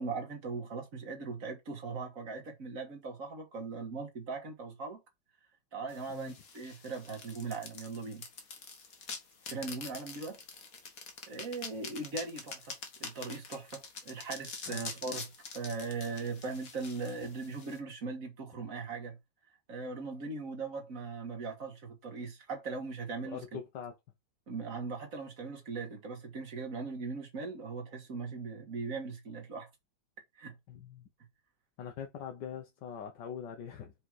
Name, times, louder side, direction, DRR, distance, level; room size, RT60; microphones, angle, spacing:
voice 1, 0.0-5.0 5.7-8.2 9.5-10.4 11.3-12.7 13.0-19.2 19.7-23.4 24.5-29.7 30.4-30.5, right 4 dB, 50° right, 2.0 m, -39 dB
sound 1, 5.9-17.8, left 5 dB, 55° left, 1.8 m, -45 dB
voice 2, 23.2-23.9 30.7-31.1 31.8-33.9, left 8 dB, 90° left, 1.7 m, -43 dB
5.0 x 5.0 x 4.7 m
omnidirectional pair, 1.9 m